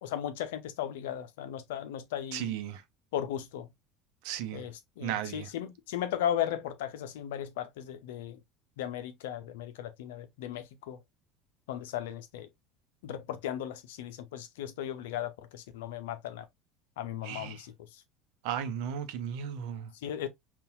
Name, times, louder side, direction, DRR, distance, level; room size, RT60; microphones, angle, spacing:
voice 1, 0.0-2.5 3.1-3.7 4.5-8.4 8.8-11.0 11.7-12.5 13.0-16.5 17.0-17.7 20.0-20.3, left 10 dB, 70° left, 0.6 m, -36 dB
voice 2, 2.3-2.8 4.2-4.7 5.0-5.5 17.2-17.6 18.4-19.9, right 9 dB, 60° right, 0.7 m, -35 dB
5.5 x 2.4 x 2.6 m
figure-of-eight pair, 70°, 0 cm